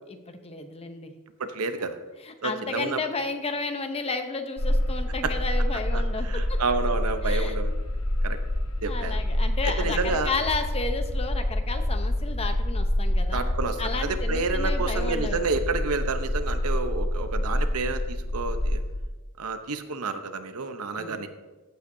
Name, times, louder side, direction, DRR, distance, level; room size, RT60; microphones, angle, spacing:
voice 1, 0.1-1.1 2.2-6.6 7.2-7.6 8.8-13.5 13.8-15.6 21.0-21.2, left 3 dB, 25° left, 7 dB, 0.7 m, -32 dB
voice 2, 1.4-2.0 2.4-3.0 5.2-5.3 5.9-7.7 8.2-8.4 8.8-9.2 9.6-10.3 13.3-18.8 19.4-21.3, right 4 dB, 80° right, 9 dB, 0.8 m, -29 dB
sound 1, 4.6-19.0, left 1 dB, 70° left, 1.0 m, -27 dB
15.0 x 8.1 x 2.7 m, 1.2 s
head